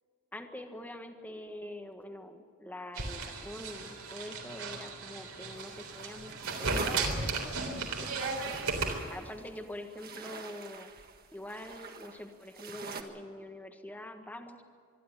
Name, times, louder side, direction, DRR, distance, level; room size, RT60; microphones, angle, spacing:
voice 1, 0.3-8.6 9.1-10.9 11.3-14.6, left 1 dB, 10° left, 5 dB, 1.6 m, -45 dB
sound 1, 3.0-9.0, right 3 dB, 75° right, 3.7 m, -35 dB
sound 2, 5.5-13.0, right 4 dB, 45° right, 1.8 m, -44 dB
26.0 x 12.0 x 9.9 m, 2.2 s
head